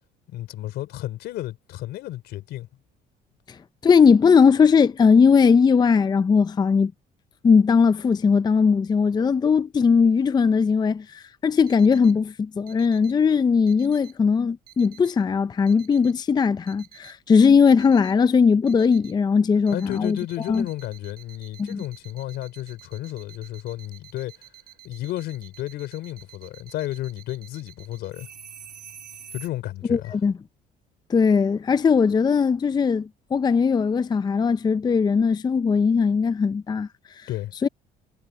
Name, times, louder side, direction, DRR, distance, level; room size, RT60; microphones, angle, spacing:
voice 1, 0.3-2.7 19.7-24.3 24.8-28.3 29.3-30.2 37.3-37.6, left 15 dB, 80° left, 4.2 m, -32 dB
voice 2, 3.8-6.9 7.4-20.2 20.5-20.6 21.6-21.8 29.9-30.3 31.1-36.9 37.2-37.3 37.6-37.7, left 5 dB, 25° left, 0.5 m, -19 dB
sound 1, 11.7-12.1 12.7-13.1 13.7-14.1 14.7-15.1 15.7-16.1 16.7-17.1 17.7-18.1 18.7-19.1 19.7-29.5, right 9 dB, 60° right, 4.9 m, -47 dB
cardioid pair, 110°, 17 cm